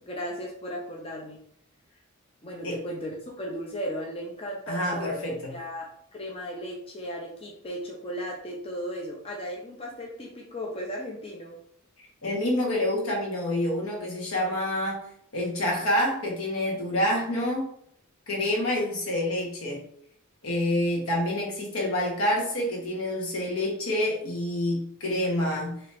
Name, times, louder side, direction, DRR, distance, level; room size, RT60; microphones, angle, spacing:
voice 1, 0.0-1.4 2.4-5.1 5.5-11.6, equal, 25° left, -1 dB, 0.5 m, -36 dB
voice 2, 4.7-5.5 12.2-15.0 15.3-17.7 18.3-19.8 20.4-25.8, left 1 dB, 75° left, -2 dB, 1.2 m, -27 dB
2.8 x 2.8 x 3.4 m, 0.68 s
head